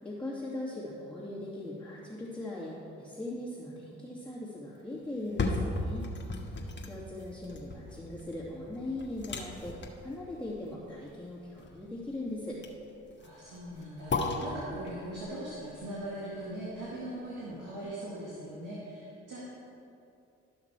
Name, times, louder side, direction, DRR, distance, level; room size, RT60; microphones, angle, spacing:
voice 1, 0.0-6.1 6.8-12.6, left 1 dB, 5° left, -10 dB, 2.3 m, -40 dB
sound 1, 5.1-17.1 17.6-17.7, left 2 dB, 35° left, 1.5 m, -37 dB
voice 2, 13.2-19.4, right 1 dB, 75° right, -6 dB, 1.9 m, -40 dB
12.5 x 5.9 x 4.6 m, 2.7 s
hypercardioid pair, 45°, 31 cm